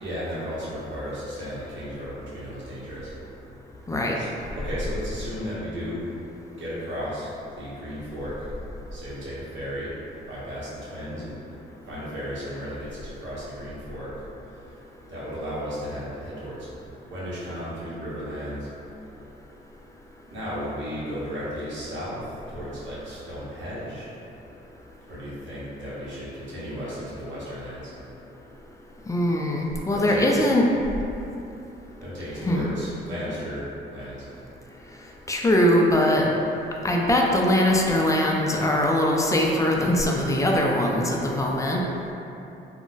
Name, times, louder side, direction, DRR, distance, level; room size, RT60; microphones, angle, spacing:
voice 1, 0.0-3.1 4.1-4.3 4.5-6.1 6.6-7.3 7.6-8.5 8.9-9.9 10.3-11.3 11.9-14.1 14.5-14.7 15.1-16.7 17.1-18.7 20.3-24.1 25.1-27.9 29.9-30.5 32.0-34.2, equal, 70° right, -8 dB, 1.0 m, -34 dB
voice 2, 29.1-30.7 32.4-32.7 35.3-36.3 36.8-41.8, left 1 dB, 15° left, -1 dB, 0.4 m, -21 dB
2.4 x 2.1 x 3.8 m, 2.9 s
cardioid pair, 90°, 20 cm